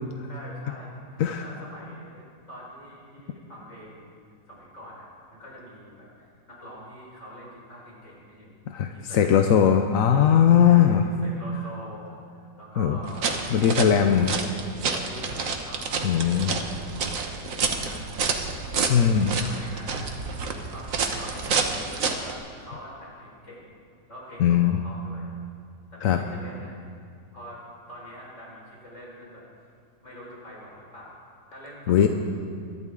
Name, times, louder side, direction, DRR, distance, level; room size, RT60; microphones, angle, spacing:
voice 1, 0.2-4.2 4.5-8.5 8.8-9.4 10.1-10.3 10.6-14.0 14.9-18.2 18.7-20.1 20.6-23.8 24.1-25.3 25.9-26.8 27.3-27.6 27.9-29.4 30.0-32.1, equal, 45° left, -6 dB, 5.2 m, -45 dB
voice 2, 8.7-11.0 12.8-13.0 13.5-14.4 16.0-16.5 18.9-19.3 24.4-24.8 26.0-26.2 31.9-32.1, left 8 dB, 65° left, 6 dB, 0.9 m, -19 dB
sound 1, 13.0-22.3, right 4 dB, 55° right, 1.4 m, -29 dB
22.5 x 12.5 x 3.8 m, 2.3 s
omnidirectional pair, 1.8 m